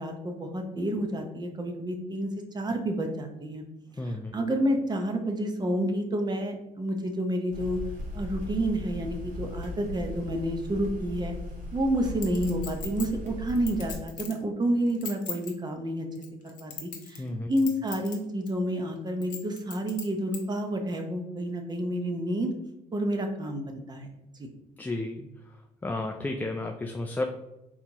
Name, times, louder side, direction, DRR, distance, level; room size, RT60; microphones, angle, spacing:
voice 1, 0.0-3.6 4.0-7.8 8.1-11.3 11.7-16.1 16.4-22.5 22.9-24.1 24.4-24.5, right 1 dB, 25° right, 4 dB, 0.8 m, -29 dB
voice 2, 4.0-4.3 17.2-17.5 24.8-25.3 25.8-27.2, left 2 dB, 10° left, 2 dB, 0.3 m, -32 dB
sound 1, 7.5-13.9, left 1 dB, 50° right, 1.5 m, -38 dB
Chink clink, 12.2-14.4 14.9-15.5 16.2-17.3 17.6-18.2 18.5-18.6 19.2-20.4 20.9-21.0, left 6 dB, 50° left, 1.3 m, -38 dB
4.3 x 4.0 x 2.9 m, 0.93 s
cardioid pair, 110°, 17 cm